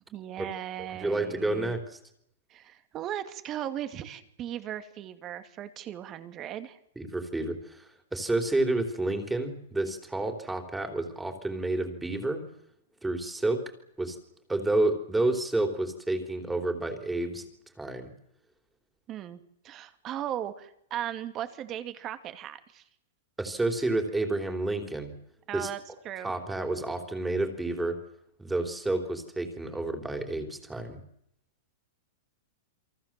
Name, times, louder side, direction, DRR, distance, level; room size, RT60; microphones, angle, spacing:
voice 1, 0.1-1.7 2.5-6.8 19.1-19.4 19.6-22.8 25.5-25.8 26.0-26.3, right 11 dB, 30° right, 9 dB, 2.5 m, -37 dB
voice 2, 0.9-2.0 7.0-12.4 13.0-13.6 14.0-14.2 14.5-17.4 17.8-18.1 23.4-25.1 25.5-25.7 26.2-28.0 28.4-31.0, right 2 dB, 5° right, 6 dB, 3.9 m, -30 dB
29.0 x 23.5 x 7.7 m, 0.75 s
hypercardioid pair, 145°, 0 cm